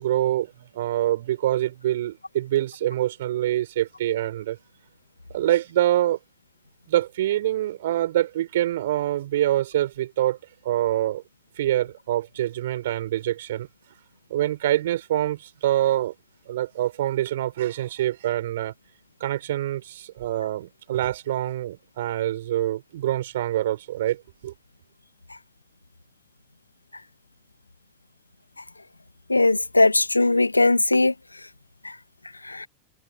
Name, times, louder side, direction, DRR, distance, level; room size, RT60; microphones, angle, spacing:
voice 1, 0.0-4.6 5.3-6.2 6.9-10.4 10.6-11.2 11.6-13.7 14.3-16.1 16.5-18.7 19.2-24.5, right 13 dB, 60° right, 5.1 m, -25 dB
voice 2, 29.3-31.1 32.6-32.7, left 2 dB, 80° left, 2.3 m, -19 dB
figure-of-eight pair, 90°, 0 cm